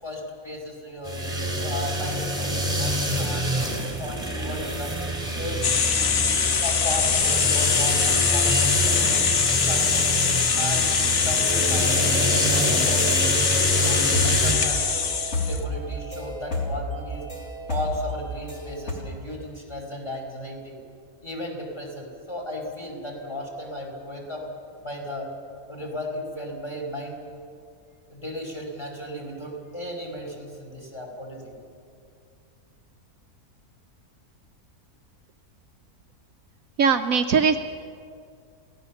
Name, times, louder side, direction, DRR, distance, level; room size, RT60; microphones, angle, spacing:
voice 1, 0.0-1.2 1.6-5.0 5.3-5.7 6.6-9.3 9.6-10.2 10.6-13.1 13.5-15.0 15.5-17.3 17.7-20.8 21.2-24.5 24.8-25.3 25.7-27.2 28.1-31.5, equal, 15° left, -1 dB, 5.2 m, -35 dB
sound 1, 1.0-14.5, right 1 dB, 10° right, 3.9 m, -27 dB
sound 2, 5.6-15.6, left 6 dB, 65° left, 1.5 m, -23 dB
sound 3, 13.8-18.9, left 1 dB, 45° left, 3.6 m, -31 dB
voice 2, 36.8-37.6, right 6 dB, 65° right, 6 dB, 1.2 m, -20 dB
28.0 x 17.0 x 7.1 m, 2.3 s
omnidirectional pair, 1.6 m